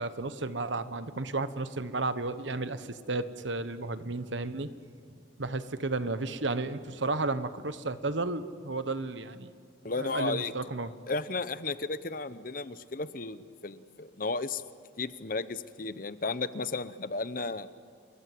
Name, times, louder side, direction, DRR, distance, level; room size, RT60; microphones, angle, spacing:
voice 1, 0.0-4.7 5.4-9.5 9.9-10.9, right 3 dB, 75° right, 12 dB, 1.3 m, -33 dB
voice 2, 9.8-10.5 11.1-14.6 15.0-17.7, left 3 dB, 45° left, 14 dB, 0.9 m, -34 dB
29.0 x 22.5 x 7.8 m, 2.2 s
head